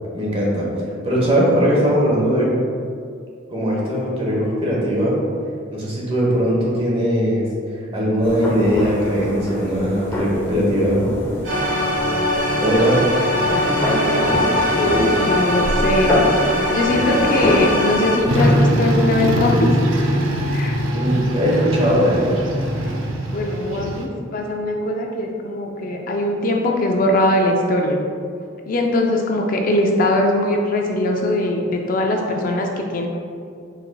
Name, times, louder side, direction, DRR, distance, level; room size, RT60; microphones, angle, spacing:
voice 1, 0.1-0.7 1.0-2.5 3.5-5.2 5.7-7.5 7.9-11.1 12.6-13.0 20.9-22.3, equal, 30° right, -4 dB, 1.0 m, -19 dB
sound 1, 8.2-18.6, left 1 dB, 10° left, 0.7 m, -25 dB
sound 2, 11.4-18.2, left 1 dB, 65° right, 1.4 m, -21 dB
voice 2, 14.8-16.2 16.7-19.7 20.5-20.8 23.3-28.0 28.6-33.1, left 1 dB, 45° left, 1 dB, 0.4 m, -21 dB
sound 3, 18.3-24.1, right 1 dB, 85° right, 0.5 m, -21 dB
4.8 x 4.7 x 2.2 m, 2.3 s
head